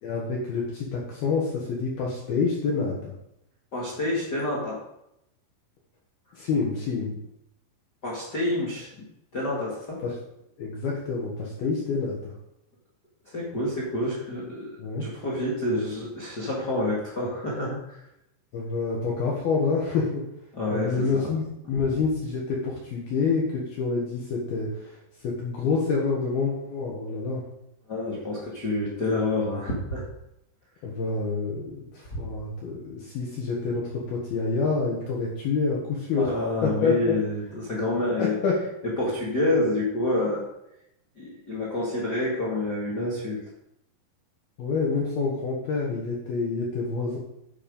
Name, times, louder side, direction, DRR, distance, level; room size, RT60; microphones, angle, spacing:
voice 1, 0.0-3.1 6.3-7.2 10.0-10.2 10.6-12.3 14.8-15.1 18.5-20.3 20.7-25.0 25.2-27.4 30.8-36.3 36.6-37.2 38.2-38.6 44.6-47.2, left 4 dB, 60° left, -3 dB, 3.0 m, -27 dB
voice 2, 3.7-4.8 8.0-9.0 9.3-10.0 13.3-14.7 15.0-18.0 20.5-21.3 27.9-30.0 36.1-38.4 39.0-40.5 41.2-43.4, left 1 dB, 45° left, -4 dB, 1.3 m, -28 dB
10.0 x 7.3 x 5.3 m, 0.82 s
omnidirectional pair, 5.5 m